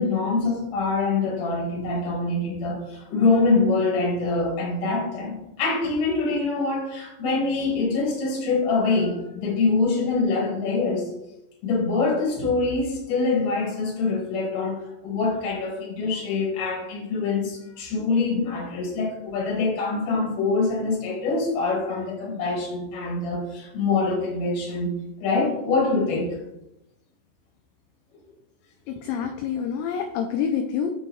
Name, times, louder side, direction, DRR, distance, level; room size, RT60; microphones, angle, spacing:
voice 1, 0.0-11.1 11.6-14.8 15.0-24.9 25.2-26.4, left 3 dB, 55° left, -2 dB, 3.0 m, -24 dB
voice 2, 28.9-30.9, left 7 dB, 80° left, 4 dB, 2.7 m, -27 dB
7.7 x 6.4 x 3.1 m, 0.88 s
omnidirectional pair, 5.6 m